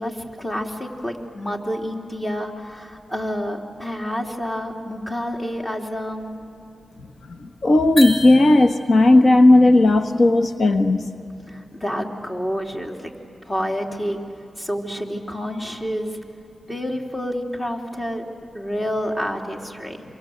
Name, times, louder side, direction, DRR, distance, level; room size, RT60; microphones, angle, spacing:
voice 1, 0.0-6.4 11.5-13.1 13.4-14.2 14.6-16.2 16.7-20.0, equal, 25° left, 1 dB, 3.7 m, -29 dB
voice 2, 7.3-11.0, left 2 dB, 65° left, 8 dB, 1.5 m, -15 dB
sound 1, 8.0-9.1, left 1 dB, 50° left, 4.6 m, -30 dB
27.5 x 25.0 x 8.2 m, 2.6 s
cardioid pair, 40°, 0 cm